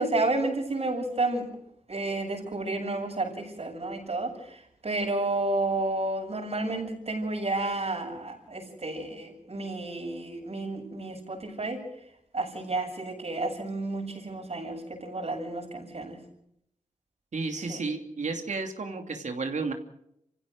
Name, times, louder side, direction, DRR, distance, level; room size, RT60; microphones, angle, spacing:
voice 1, 0.0-1.5 1.9-11.8 12.3-16.2 17.6-17.8, right 2 dB, 55° right, 2 dB, 7.5 m, -31 dB
voice 2, 17.3-19.7, right 4 dB, 70° right, 4 dB, 2.8 m, -32 dB
27.5 x 16.0 x 6.4 m, 0.75 s
cardioid pair, 50°, 13 cm